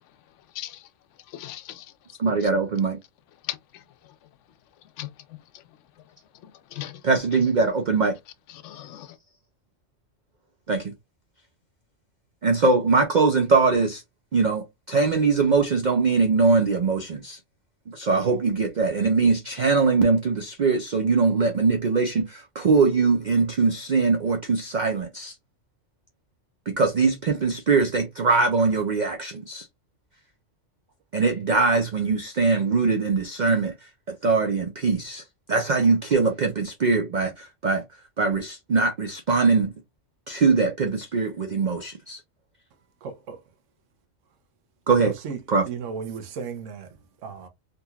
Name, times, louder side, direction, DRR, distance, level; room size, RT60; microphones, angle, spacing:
voice 1, 1.3-1.9 3.5-3.6 5.0-5.1 6.4-7.0 8.6-9.1, left 13 dB, 75° left, 0.9 m, -36 dB
voice 2, 2.2-3.0 7.0-8.2 10.7-10.9 12.4-14.0 14.3-17.4 17.9-25.3 26.7-29.7 31.1-37.8 38.2-39.7 40.3-42.2 44.9-45.1 45.5-45.6, right 4 dB, 55° right, 0.5 m, -22 dB
voice 3, 43.0-43.4 45.0-45.4 45.7-47.5, right 6 dB, 75° right, 1.1 m, -35 dB
3.7 x 2.8 x 2.3 m
omnidirectional pair, 1.3 m